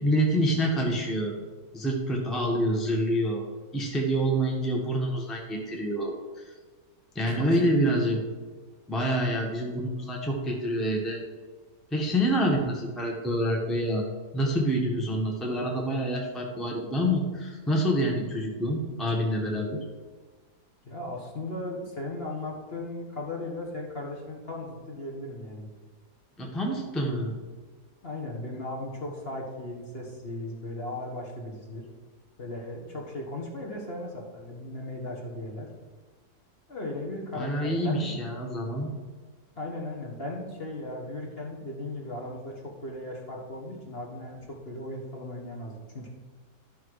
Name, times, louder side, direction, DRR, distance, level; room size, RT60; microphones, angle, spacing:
voice 1, 0.0-1.3 1.7-3.4 3.7-6.4 7.1-8.2 8.9-11.2 11.9-14.1 14.3-19.8 26.4-27.3 37.3-38.9, equal, ahead, 0 dB, 1.1 m, -27 dB
voice 2, 7.3-7.8 20.8-25.7 28.0-31.9 32.4-35.7 36.7-38.1 39.6-46.1, left 2 dB, 35° left, -1 dB, 1.6 m, -37 dB
12.5 x 5.7 x 4.8 m, 1.4 s
omnidirectional pair, 1.8 m